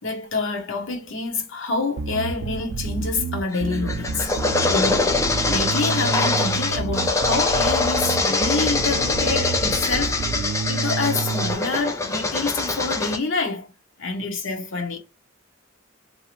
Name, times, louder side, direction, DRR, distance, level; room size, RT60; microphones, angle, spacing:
voice 1, 0.0-4.3 4.7-5.1 5.5-10.2 10.7-13.7 14.0-15.0, left 3 dB, 65° left, 0.8 m, -27 dB
Bass guitar, 2.0-11.6, right 5 dB, 90° right, 0.3 m, -29 dB
sound 1, 3.5-13.2, left 3 dB, 15° left, 0.4 m, -23 dB
2.7 x 2.4 x 3.0 m
head